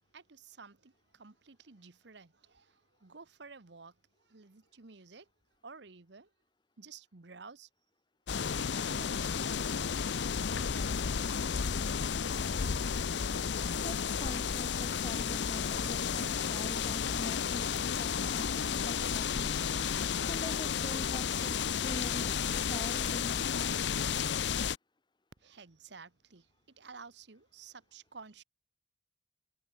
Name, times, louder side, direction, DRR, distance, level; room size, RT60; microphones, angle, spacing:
voice 1, 0.1-3.9 4.3-5.3 5.6-6.3 6.8-7.7 8.6-9.3 10.5-11.6 25.4-28.4, right 5 dB, 70° right, 1.1 m, -53 dB
sound 1, 8.3-24.8, left 7 dB, 70° left, 0.6 m, -32 dB
voice 2, 13.8-19.6 20.2-23.4, left 1 dB, 25° left, 1.3 m, -44 dB
head